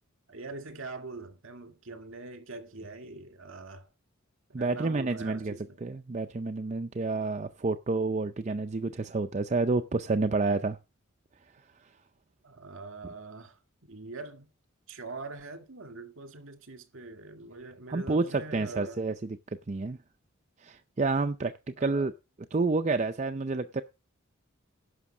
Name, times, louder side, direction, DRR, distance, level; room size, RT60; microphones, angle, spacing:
voice 1, 0.3-3.9 4.6-5.8 12.4-14.5 14.9-19.0 21.8-22.1, right 3 dB, 65° right, 2.1 m, -43 dB
voice 2, 4.5-5.5 5.8-10.8 17.9-19.1 19.5-20.0 20.6-22.1 22.5-23.8, right 3 dB, 30° right, 0.5 m, -29 dB
11.0 x 6.2 x 5.9 m
head